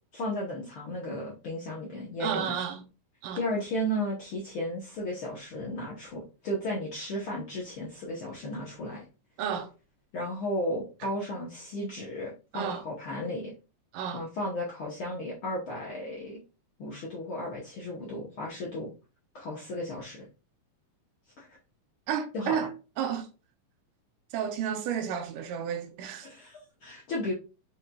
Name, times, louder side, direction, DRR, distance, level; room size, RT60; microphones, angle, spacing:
voice 1, 0.1-2.5 3.3-9.0 10.1-13.5 14.1-16.4 16.8-18.9 19.3-20.3 21.4-21.6 22.3-22.7 26.2-27.3, left 1 dB, 80° left, 1.1 m, -34 dB
voice 2, 2.2-2.8 3.2-3.4 9.4-9.7 12.5-12.8 13.9-14.2 22.1-23.3 24.3-26.3, right 8 dB, 80° right, 2.1 m, -32 dB
5.1 x 4.3 x 2.2 m
omnidirectional pair, 3.8 m